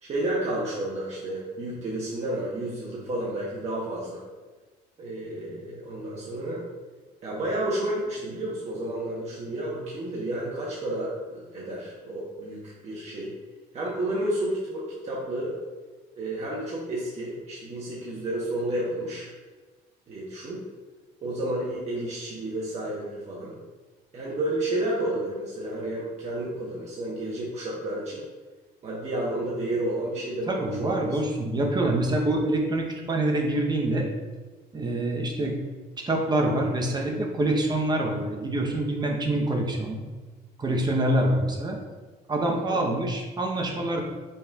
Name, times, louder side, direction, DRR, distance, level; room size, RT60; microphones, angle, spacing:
voice 1, 0.0-4.2 5.0-6.6 7.2-13.3 13.7-15.6 16.2-19.3 20.1-20.6 21.2-23.6 24.1-28.2 28.8-31.2 42.4-42.8, right 1 dB, 40° right, -6 dB, 1.0 m, -31 dB
voice 2, 30.5-34.1 34.7-35.6 36.0-40.0 40.6-41.8 42.3-44.0, right 1 dB, 25° right, 1 dB, 0.8 m, -25 dB
5.5 x 4.2 x 2.4 m, 1.3 s
cardioid pair, 110°, 17 cm